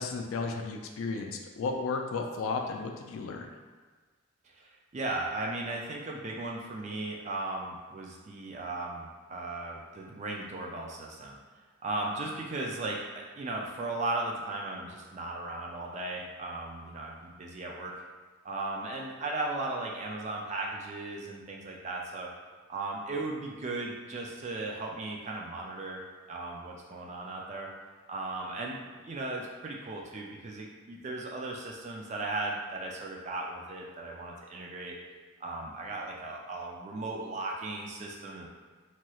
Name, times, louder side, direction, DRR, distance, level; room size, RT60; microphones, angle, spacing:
voice 1, 0.0-3.5, left 4 dB, 70° left, 3 dB, 0.3 m, -34 dB
voice 2, 4.4-11.4 11.8-13.0 13.4-17.9 18.4-22.3 22.7-26.0 26.3-27.7 28.1-35.0 35.4-38.5, right 2 dB, 30° right, -1 dB, 0.3 m, -36 dB
3.0 x 2.9 x 2.3 m, 1.4 s
head